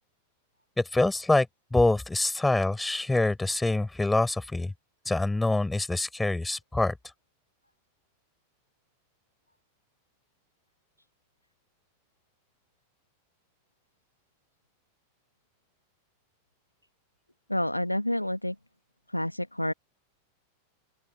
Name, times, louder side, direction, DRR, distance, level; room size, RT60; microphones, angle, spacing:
voice 1, 0.8-1.5 1.7-4.7 5.1-6.9, left 2 dB, 5° left, 5.5 m, -25 dB
voice 2, 17.5-18.5 19.1-19.7, left 1 dB, 90° left, 1.7 m, -28 dB
open air
figure-of-eight pair, 90°, 0 cm